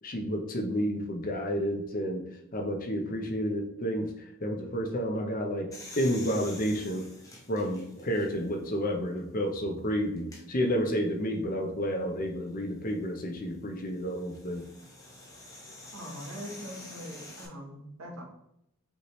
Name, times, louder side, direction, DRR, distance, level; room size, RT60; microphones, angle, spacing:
voice 1, 0.0-2.2 2.5-5.7 6.0-7.0 7.5-14.7, equal, 40° left, 3 dB, 0.7 m, -30 dB
sound 1, 5.7-8.6 9.2-9.3 10.2-10.4 12.6-17.5, left 2 dB, 15° left, 0.8 m, -48 dB
voice 2, 15.9-18.2, equal, 85° right, 1 dB, 1.3 m, -42 dB
5.3 x 3.1 x 3.1 m, 0.76 s
head